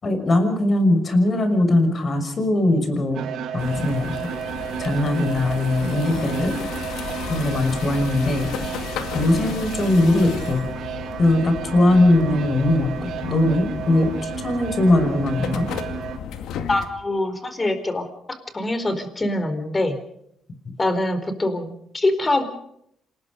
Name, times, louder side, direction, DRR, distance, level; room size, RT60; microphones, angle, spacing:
voice 1, 0.0-4.3 4.8-6.6 7.3-8.5 9.1-10.6 11.2-15.7, left 1 dB, 40° left, 8 dB, 6.1 m, -20 dB
sound 1, 3.1-16.2, right 8 dB, 75° right, 2.6 m, -33 dB
sound 2, 3.6-16.9, left 7 dB, 85° left, 2.1 m, -34 dB
voice 2, 16.7-20.0 20.8-22.4, left 2 dB, 25° left, 10 dB, 4.3 m, -24 dB
27.5 x 20.0 x 5.4 m, 0.72 s
cardioid pair, 90°, 0 cm